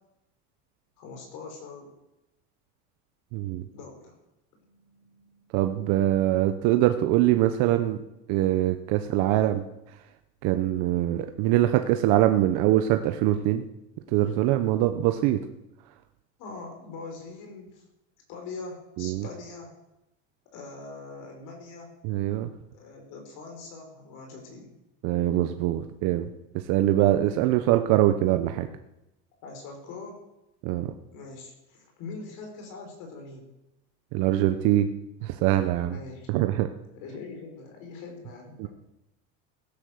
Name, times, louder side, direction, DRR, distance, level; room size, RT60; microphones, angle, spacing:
voice 1, 1.0-1.9 3.7-4.1 4.6-5.4 16.4-17.8 18.3-19.7 20.5-21.9 22.7-24.7 29.4-30.2 31.1-33.5 35.9-36.3 36.9-38.7, left 3 dB, 60° left, 2 dB, 4.8 m, -42 dB
voice 2, 3.3-3.6 5.5-8.0 8.3-9.6 10.4-13.6 14.1-15.4 19.0-19.2 22.0-22.5 25.0-26.3 26.5-28.7 30.6-30.9 34.1-34.9 35.2-36.0 36.3-36.7 38.6-38.7, right 13 dB, 60° right, 8 dB, 1.0 m, -23 dB
17.0 x 10.5 x 6.5 m, 0.91 s
supercardioid pair, 135°, 35 cm